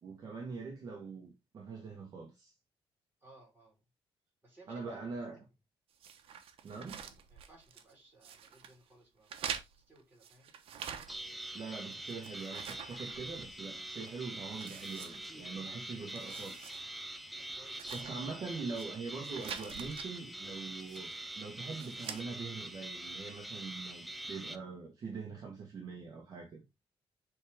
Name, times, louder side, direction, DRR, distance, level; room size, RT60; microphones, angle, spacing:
voice 1, 0.0-2.5 4.7-5.4 6.6-7.0 11.5-16.8 17.9-21.1 21.4-26.6, right 4 dB, 40° right, 1.4 m, -43 dB
voice 2, 3.2-3.8 4.4-5.0 5.3-5.5 7.3-10.5 17.3-18.0, right 2 dB, 20° right, 4.1 m, -61 dB
sound 1, 6.0-7.9 8.2-8.7 9.3-11.4 11.7-13.7 14.0-14.1 14.5-15.7 16.0-16.8 17.1-17.2 17.7-18.9 19.2-20.1 20.8-21.2 21.7-22.2, right 8 dB, 75° right, 1.0 m, -46 dB
sound 2, 11.1-24.6, right 1 dB, ahead, 0.5 m, -44 dB
7.7 x 3.7 x 3.5 m
cardioid pair, 175°, 10 cm